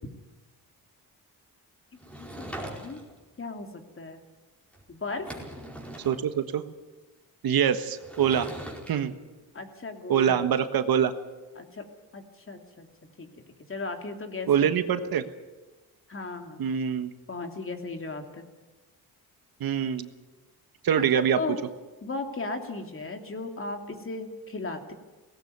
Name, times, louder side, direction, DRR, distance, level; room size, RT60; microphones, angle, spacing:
Sliding door / Wood, 2.0-3.2 4.7-4.8 5.1-6.2 8.0-8.9, right 1 dB, 5° left, 4.8 m, -41 dB
voice 1, 2.1-3.0 3.4-4.2 4.9-5.3 9.5-10.3 11.6-11.9 12.1-12.9 13.2-13.3 13.7-14.5 16.1-16.6 17.3-18.4 21.4-21.6 22.0-24.9, left 3 dB, 35° left, 5 dB, 2.9 m, -36 dB
voice 2, 6.0-6.6 7.4-8.5 8.9-9.1 10.1-11.1 14.5-15.2 16.6-17.1 19.6-20.1 20.8-21.4, right 8 dB, 70° right, 10 dB, 1.5 m, -24 dB
18.5 x 16.5 x 9.5 m, 1.2 s
cardioid pair, 90°, 37 cm